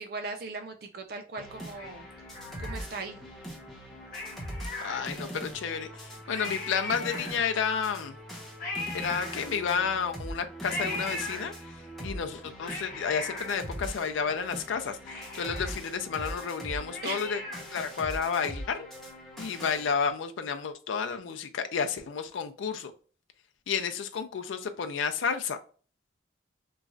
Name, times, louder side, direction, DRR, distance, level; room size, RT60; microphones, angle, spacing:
voice 1, 0.0-2.1 2.6-3.2 17.0-17.2, right 4 dB, 50° right, 5 dB, 0.4 m, -38 dB
sound 1, 1.4-19.9, equal, ahead, 0.7 m, -42 dB
Cat, 1.7-3.2 4.1-5.5 5.9-6.0 6.2-7.7 8.6-9.9 10.6-11.9 12.4-14.4 14.7-14.8 15.1-17.8 18.2-18.3, left 2 dB, 45° left, 1.4 m, -39 dB
voice 2, 4.8-8.2 8.9-11.5 12.0-17.4 17.7-18.9 19.4-22.9 23.7-25.6, left 6 dB, 80° left, 7 dB, 0.4 m, -31 dB
3.0 x 2.4 x 2.5 m, 0.39 s
head